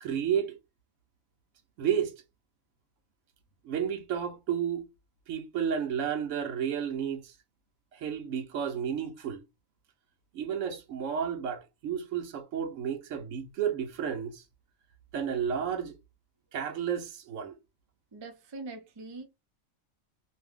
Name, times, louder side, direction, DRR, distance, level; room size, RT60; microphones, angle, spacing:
voice 1, 0.0-0.6 1.8-2.1 3.6-4.8 5.3-7.3 7.9-9.4 10.3-14.4 15.1-16.0 16.5-17.6, right 8 dB, 70° right, 0.9 m, -32 dB
voice 2, 18.1-19.3, right 3 dB, 45° right, 0.3 m, -42 dB
2.6 x 2.1 x 3.5 m
omnidirectional pair, 1.4 m